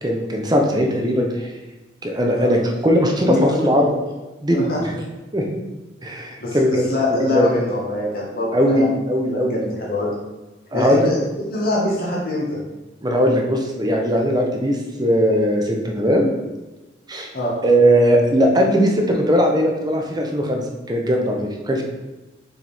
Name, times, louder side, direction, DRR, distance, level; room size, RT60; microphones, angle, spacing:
voice 1, 0.0-1.5 2.0-3.9 4.4-5.1 5.3-5.6 6.0-6.7 7.3-7.5 8.5-9.6 10.7-11.1 13.0-16.3 17.1-17.3 17.6-21.8, equal, 20° right, 1 dB, 0.7 m, -19 dB
voice 2, 3.2-3.7 4.5-4.8 6.4-8.9 9.3-10.1 10.7-12.6 17.3-17.5, left 2 dB, 50° left, -5 dB, 1.4 m, -24 dB
6.2 x 4.5 x 3.4 m, 1.1 s
head